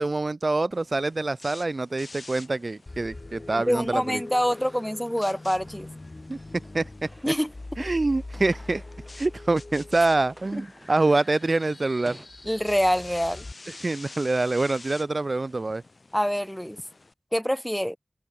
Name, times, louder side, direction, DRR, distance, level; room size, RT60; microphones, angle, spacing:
voice 1, 0.0-4.2 6.3-6.4 6.7-6.9 7.8-8.8 9.2-12.2 13.8-15.8, right 2 dB, 75° right, 0.6 m, -25 dB
sound 1, 0.7-17.1, left 3 dB, 80° left, 2.8 m, -49 dB
sound 2, 2.9-13.5, left 2 dB, 60° left, 0.9 m, -43 dB
voice 2, 3.7-5.9 7.2-7.5 10.5-10.6 12.5-13.4 16.1-16.8 17.3-18.0, equal, 5° left, 0.8 m, -25 dB
sound 3, 4.4-9.8 10.1-12.3, right 1 dB, 20° right, 5.9 m, -53 dB
open air
wide cardioid pair, 45°, 0 cm